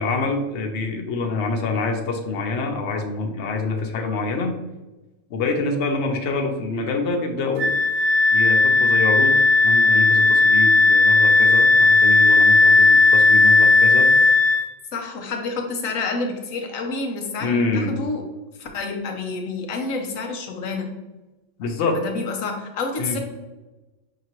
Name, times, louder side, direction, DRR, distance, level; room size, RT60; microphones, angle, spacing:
voice 1, 0.0-4.5 5.3-7.7 8.3-9.3 9.6-14.1 17.4-18.0 21.6-22.0 23.0-23.2, left 3 dB, 65° left, 3 dB, 0.8 m, -26 dB
Wind instrument woodwind instrument, 7.6-14.6, left 3 dB, 90° right, 1.0 m, -15 dB
voice 2, 14.9-18.2 18.6-20.9 22.0-23.2, left 3 dB, 85° left, 3 dB, 1.1 m, -28 dB
5.2 x 2.9 x 2.9 m, 1.1 s
omnidirectional pair, 1.4 m